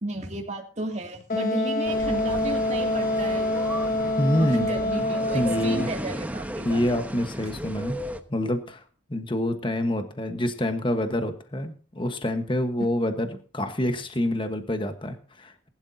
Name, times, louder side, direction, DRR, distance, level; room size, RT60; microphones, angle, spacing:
voice 1, 0.0-3.5 4.4-7.0, right 2 dB, 35° right, 2 dB, 2.5 m, -33 dB
Wind instrument woodwind instrument, 1.3-6.0, left 1 dB, 45° left, 1.2 m, -26 dB
sound 1, 1.8-8.2, equal, 10° right, 0.9 m, -35 dB
voice 2, 4.2-4.7 5.3-5.9 6.6-8.0 8.3-8.8 9.1-13.3 13.5-15.7, left 1 dB, 25° left, 7 dB, 1.2 m, -26 dB
20.0 x 11.5 x 2.8 m, 0.39 s
head